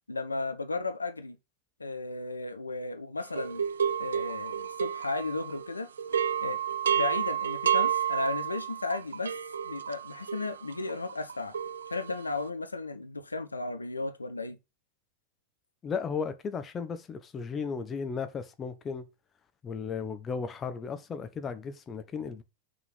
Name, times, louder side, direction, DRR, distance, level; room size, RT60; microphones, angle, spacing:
voice 1, 0.1-1.4 1.8-3.6 4.0-5.9 6.4-6.6 6.9-9.3 9.6-11.5 11.9-14.6, left 3 dB, 80° left, 0.8 m, -34 dB
sound 1, 3.4-5.7 6.0-12.3, right 8 dB, 70° right, 0.3 m, -31 dB
voice 2, 15.8-19.1 19.6-22.4, left 5 dB, 20° left, 1.1 m, -35 dB
6.1 x 5.5 x 6.0 m
figure-of-eight pair, 90°, 0 cm